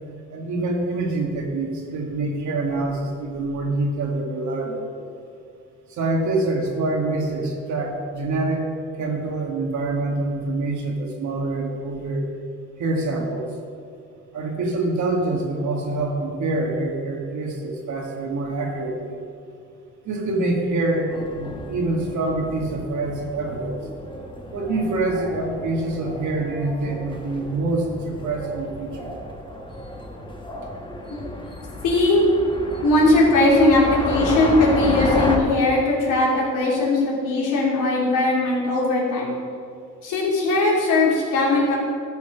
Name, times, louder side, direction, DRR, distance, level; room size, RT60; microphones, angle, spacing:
voice 1, 0.3-4.9 5.9-8.7 9.0-12.2 12.8-13.5 14.3-19.2 20.0-23.8 24.5-29.1, right 2 dB, 70° right, 0 dB, 2.2 m, -25 dB
sound 1, 21.1-35.4, left 1 dB, 15° left, 1.5 m, -32 dB
voice 2, 31.8-32.3 32.8-39.4 40.0-41.8, left 2 dB, 85° left, -4 dB, 3.0 m, -19 dB
13.0 x 6.0 x 6.2 m, 2.4 s
cardioid pair, 90°, 30 cm